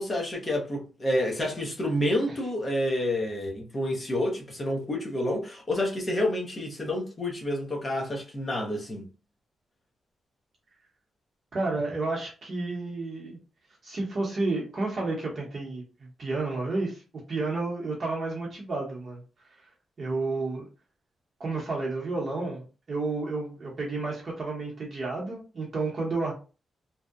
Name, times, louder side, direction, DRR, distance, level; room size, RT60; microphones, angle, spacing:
voice 1, 0.0-9.1, left 1 dB, 25° left, 0.6 m, -29 dB
voice 2, 11.5-13.4 13.8-17.0 17.3-19.2 20.0-20.6 21.4-26.3, right 3 dB, 40° right, 0.7 m, -31 dB
2.6 x 2.0 x 2.3 m
wide cardioid pair, 155°, 0 cm